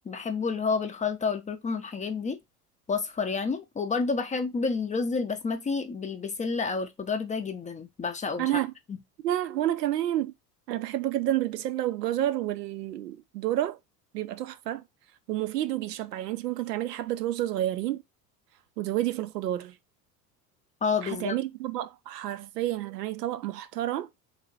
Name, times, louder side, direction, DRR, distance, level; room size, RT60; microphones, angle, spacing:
voice 1, 0.1-2.4 2.9-8.5 20.8-21.4, left 4 dB, 15° left, 0.5 m, -29 dB
voice 2, 8.4-8.7 9.2-10.3 10.7-13.8 14.1-14.8 15.3-18.0 18.8-19.8 21.0-24.1, right 13 dB, 80° right, 0.6 m, -29 dB
3.3 x 2.9 x 3.9 m
figure-of-eight pair, 70°, 48 cm